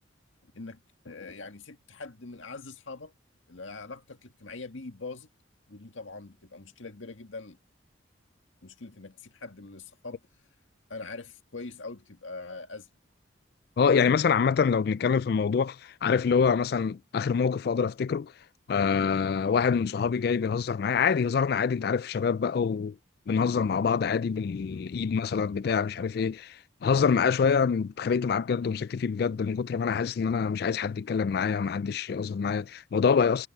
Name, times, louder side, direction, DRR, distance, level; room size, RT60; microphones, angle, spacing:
voice 1, 0.4-3.1 3.5-5.3 5.7-7.6 8.6-10.2 10.9-12.9 24.7-25.1, left 3 dB, 85° left, 1.8 m, -43 dB
voice 2, 13.8-18.3 18.7-23.0 23.3-33.5, left 6 dB, 50° left, 0.3 m, -26 dB
head